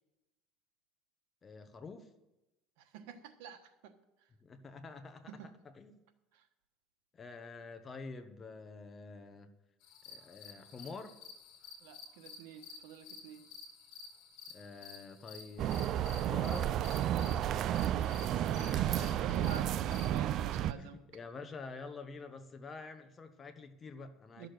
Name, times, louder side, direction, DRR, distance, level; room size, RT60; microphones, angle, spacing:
voice 1, 1.4-2.1 4.4-6.0 7.1-9.5 10.1-11.2 14.5-16.7 18.6-19.4 20.7-24.5, left 4 dB, 25° left, 9 dB, 1.1 m, -48 dB
voice 2, 2.9-3.9 5.3-5.5 11.8-13.4 17.1-17.5 18.0-21.0 24.4-24.5, right 8 dB, 85° right, 8 dB, 1.2 m, -48 dB
sound 1, 9.8-20.2, left 5 dB, 65° left, 1.9 m, -53 dB
sound 2, 15.6-20.7, right 11 dB, 50° right, 0.4 m, -32 dB
12.5 x 6.7 x 7.8 m, 0.96 s
cardioid pair, 135°, 0 cm